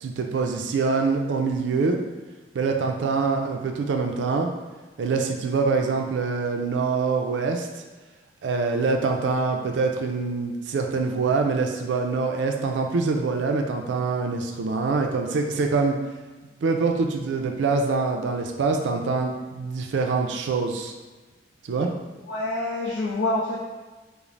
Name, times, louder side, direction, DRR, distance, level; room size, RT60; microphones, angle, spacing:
voice 1, 0.0-2.0 2.5-4.5 5.0-7.7 8.4-16.0 16.6-20.9 21.6-21.9, right 4 dB, 80° right, 3 dB, 0.3 m, -25 dB
voice 2, 22.3-23.6, left 2 dB, 70° left, -5 dB, 0.4 m, -26 dB
2.5 x 2.0 x 3.1 m, 1.2 s
head